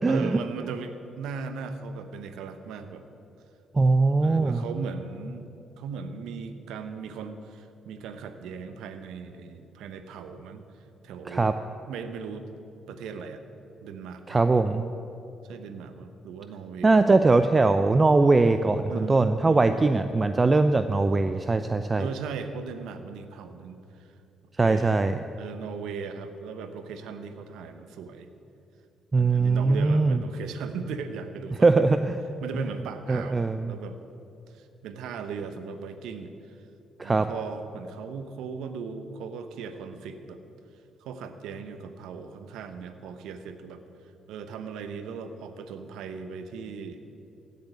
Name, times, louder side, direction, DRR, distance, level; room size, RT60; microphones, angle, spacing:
voice 1, 0.1-3.0 4.2-5.5 5.8-10.6 11.0-11.5 11.9-12.5 12.9-13.4 13.8-14.4 15.4-17.1 18.9-19.9 22.0-24.1 24.6-24.9 25.4-28.3 29.1-32.0 32.4-34.0 34.5-36.6 37.0-40.4 41.0-43.8 44.3-47.0, right 5 dB, 70° right, 9 dB, 1.0 m, -38 dB
voice 2, 3.7-4.6 11.3-11.5 14.3-14.9 16.8-22.1 24.6-25.2 29.1-30.2 31.6-32.2 32.5-32.7 33.1-33.7 37.0-37.3, right 3 dB, 30° right, 10 dB, 0.6 m, -21 dB
15.5 x 6.8 x 9.7 m, 2.7 s
hypercardioid pair, 45°, 0 cm